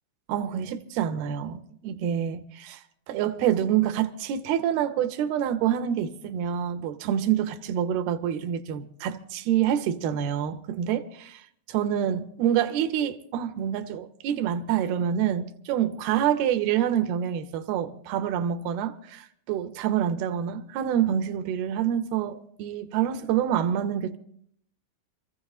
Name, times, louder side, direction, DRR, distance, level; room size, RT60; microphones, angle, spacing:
voice 1, 0.3-2.8 3.1-11.4 11.7-24.2, right 9 dB, 75° right, 2.4 m, -27 dB
28.0 x 15.0 x 2.4 m
omnidirectional pair, 5.1 m